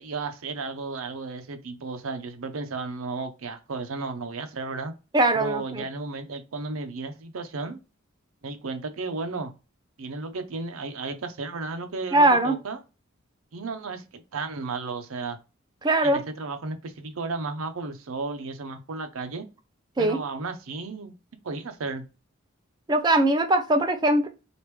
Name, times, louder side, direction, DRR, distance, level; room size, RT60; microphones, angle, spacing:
voice 1, 0.0-4.9 5.3-7.8 8.4-9.5 10.0-12.8 13.5-15.4 16.0-19.5 20.0-21.1 21.4-22.0, right 3 dB, 85° right, 8 dB, 0.6 m, -34 dB
voice 2, 5.1-5.8 12.1-12.6 15.8-16.2 20.0-20.2 22.9-24.3, right 2 dB, 20° right, 7 dB, 0.4 m, -21 dB
3.1 x 2.5 x 3.2 m, 0.30 s
head